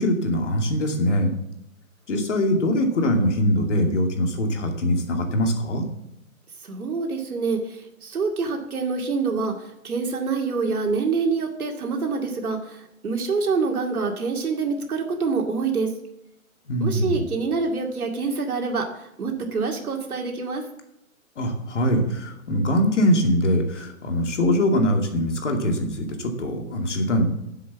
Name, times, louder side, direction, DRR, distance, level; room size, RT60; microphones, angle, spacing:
voice 1, 0.0-1.3 2.1-5.9 16.7-17.3 21.4-27.2, equal, 55° left, 3 dB, 2.5 m, -22 dB
voice 2, 6.6-15.9 16.8-20.6, right 4 dB, 90° right, 2 dB, 2.4 m, -26 dB
10.5 x 7.6 x 7.2 m, 0.80 s
hypercardioid pair, 175°, 42 cm